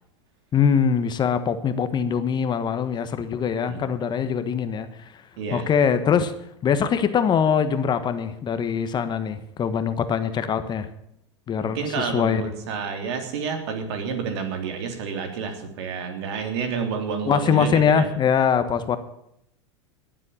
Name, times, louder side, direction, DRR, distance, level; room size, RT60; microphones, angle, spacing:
voice 1, 0.5-5.2 5.5-6.3 6.6-10.9 11.5-12.5 17.3-19.0, left 7 dB, 30° left, 10 dB, 1.3 m, -23 dB
voice 2, 5.4-5.7 11.6-18.1, right 5 dB, 65° right, 5 dB, 3.4 m, -29 dB
20.0 x 7.7 x 7.2 m, 0.77 s
hypercardioid pair, 105°, 15 cm